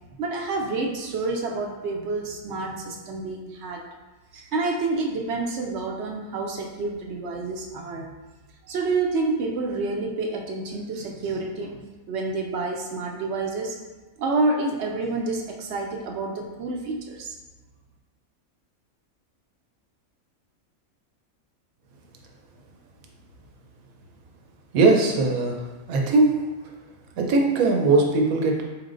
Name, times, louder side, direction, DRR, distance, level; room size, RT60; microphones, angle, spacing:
voice 1, 0.2-3.8 4.3-8.1 8.7-13.8 14.2-17.3, right 3 dB, 65° right, 1 dB, 0.7 m, -28 dB
voice 2, 24.7-25.6 25.9-26.4 27.2-28.6, right 3 dB, 80° right, 1 dB, 1.1 m, -20 dB
4.3 x 3.2 x 2.5 m, 1.2 s
omnidirectional pair, 1.5 m